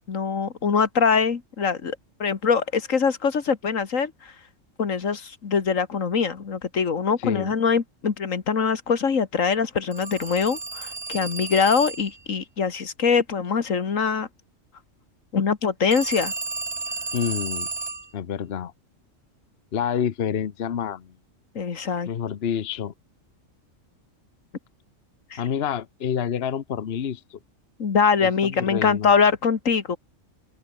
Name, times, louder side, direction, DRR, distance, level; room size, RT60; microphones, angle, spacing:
voice 1, 0.1-4.3 4.8-14.3 15.3-16.3 21.6-22.1 25.3-25.4 27.8-30.0, left 5 dB, 80° left, 2.1 m, -23 dB
voice 2, 7.2-7.5 17.1-17.7 18.1-18.7 19.7-21.1 22.1-22.9 25.4-27.4 28.2-29.2, left 8 dB, 55° left, 1.1 m, -28 dB
Telephone, 9.9-12.2 15.9-18.1, right 4 dB, 25° right, 0.8 m, -33 dB
open air
omnidirectional pair, 1.4 m